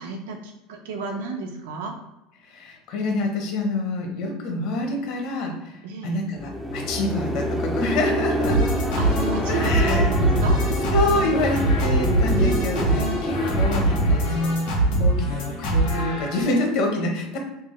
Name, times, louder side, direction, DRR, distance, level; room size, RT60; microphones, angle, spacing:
voice 1, 0.0-1.9 5.8-6.2 9.0-10.6 12.4-12.6, right 4 dB, 90° right, 3 dB, 0.6 m, -32 dB
voice 2, 2.5-8.6 9.5-10.1 10.9-14.7 15.0-17.4, left 2 dB, 55° left, 2 dB, 0.9 m, -27 dB
sound 1, 6.3-15.3, equal, ahead, 0.3 m, -27 dB
sound 2, 8.4-16.6, right 1 dB, 75° left, 1.5 m, -23 dB
3.3 x 2.0 x 3.1 m, 0.95 s
supercardioid pair, 155°, 0 cm